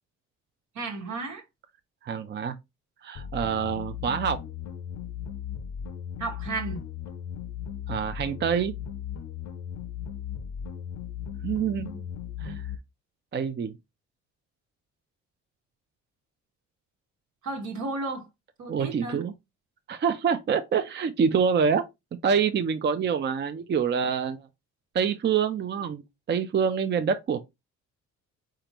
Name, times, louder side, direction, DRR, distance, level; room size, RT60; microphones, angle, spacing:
voice 1, 0.7-1.4 6.2-6.8 11.6-12.0 17.4-18.3 18.6-19.2, right 3 dB, 75° right, 1.4 m, -34 dB
voice 2, 2.0-2.6 3.0-4.4 7.9-8.7 11.4-11.9 12.4-12.7 13.3-13.8 18.7-19.3 19.9-21.8 22.2-24.5 24.9-27.4, right 6 dB, 35° right, 0.5 m, -26 dB
sound 1, 3.2-12.8, left 9 dB, 60° left, 0.6 m, -37 dB
4.4 x 3.7 x 2.9 m
cardioid pair, 90°, 30 cm